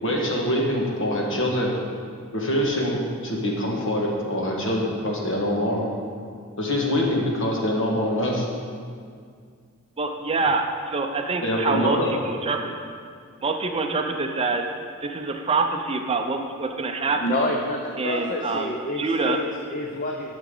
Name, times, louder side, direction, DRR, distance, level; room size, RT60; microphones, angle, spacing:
voice 1, 0.0-1.7 2.3-3.0 3.2-5.8 6.6-8.4 11.4-12.1, left 1 dB, 60° left, -2 dB, 1.6 m, -24 dB
voice 2, 10.0-12.0 12.2-12.8 13.4-14.7 15.0-17.2 18.0-19.4, right 3 dB, 25° right, 4 dB, 0.5 m, -26 dB
voice 3, 17.2-20.4, left 1 dB, 40° left, 0 dB, 0.6 m, -28 dB
11.5 x 7.1 x 3.8 m, 2.2 s
head